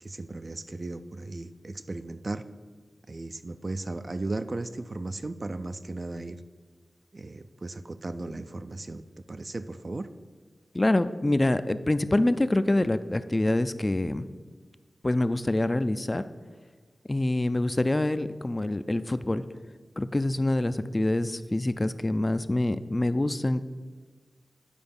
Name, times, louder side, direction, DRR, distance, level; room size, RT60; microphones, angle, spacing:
voice 1, 0.0-2.4 3.1-6.4 7.1-9.0 9.3-10.1, right 2 dB, 45° right, 10 dB, 0.4 m, -36 dB
voice 2, 10.7-14.3 15.0-16.2 17.1-19.4 20.0-23.6, left 1 dB, 30° left, 12 dB, 0.4 m, -26 dB
10.0 x 4.7 x 5.3 m, 1.4 s
wide cardioid pair, 60°, 0 cm